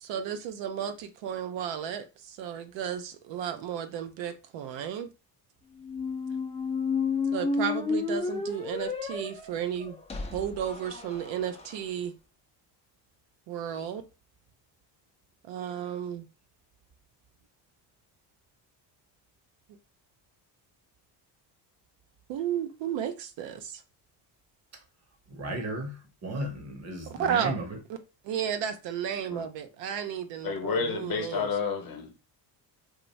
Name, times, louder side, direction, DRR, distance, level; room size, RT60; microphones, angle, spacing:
voice 1, 0.0-5.1 7.3-10.0 10.3-12.1 13.5-14.0 15.4-16.3 19.7-19.8 22.3-23.8 27.0-27.6 28.2-31.5, right 9 dB, 80° right, 0.6 m, -33 dB
sound 1, 5.8-11.7, left 4 dB, 15° left, 0.4 m, -31 dB
voice 2, 25.3-27.8, right 1 dB, 35° right, 0.8 m, -35 dB
voice 3, 30.4-32.2, left 5 dB, 50° left, 0.9 m, -30 dB
2.5 x 2.1 x 3.0 m
cardioid pair, 105°, 44 cm